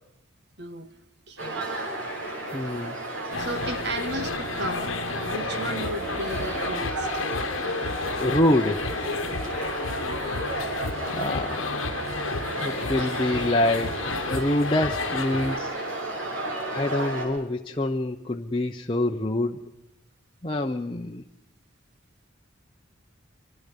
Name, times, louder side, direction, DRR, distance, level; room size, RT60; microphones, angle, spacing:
voice 1, 0.6-0.9 1.3-1.7 3.4-7.1 9.2-9.5, right 1 dB, 55° right, 10 dB, 1.6 m, -35 dB
sound 1, 1.4-17.2, right 2 dB, 85° right, 7.2 m, -33 dB
voice 2, 2.5-3.0 8.2-8.9 11.1-11.6 12.6-15.7 16.1-16.3 16.7-19.6 20.4-21.2, left 1 dB, 25° left, 3 dB, 0.9 m, -26 dB
sound 2, 3.3-15.6, left 4 dB, 80° left, 1.1 m, -32 dB
28.0 x 25.5 x 5.4 m, 0.90 s
head